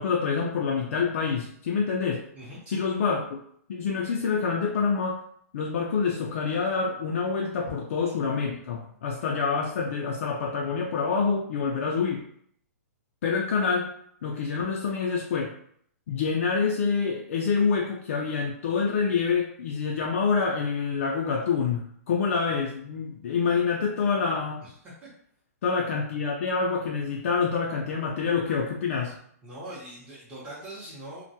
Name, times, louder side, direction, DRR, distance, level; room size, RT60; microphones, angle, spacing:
voice 1, 0.0-2.2 2.7-3.4 3.7-5.2 5.5-12.2 13.2-13.9 14.2-15.5 16.1-24.6 25.6-29.1, left 5 dB, 55° left, -1 dB, 0.3 m, -27 dB
voice 2, 2.3-2.8 24.6-25.1 29.4-31.3, right 1 dB, 10° right, -9 dB, 0.7 m, -42 dB
2.2 x 2.1 x 2.7 m, 0.65 s
hypercardioid pair, 150°, 9 cm